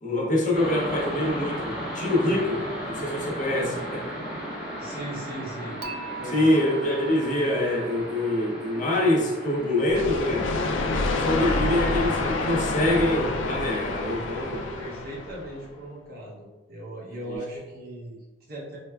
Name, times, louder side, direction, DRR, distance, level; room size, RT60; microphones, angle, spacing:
voice 1, 0.0-4.1 6.3-10.5 11.1-14.6 17.3-17.4, left 1 dB, 40° left, -3 dB, 0.7 m, -25 dB
sound 1, 0.5-14.9, equal, ahead, 1.1 m, -37 dB
voice 2, 4.8-5.8 6.1-6.5 14.7-18.8, right 1 dB, 50° right, -5 dB, 0.7 m, -38 dB
Dishes pots and pans / Chink clink, 5.8-9.0, right 6 dB, 85° right, 0.4 m, -40 dB
sound 2, 9.9-15.6, left 3 dB, 80° left, 0.4 m, -28 dB
4.3 x 2.2 x 2.3 m, 1.2 s
head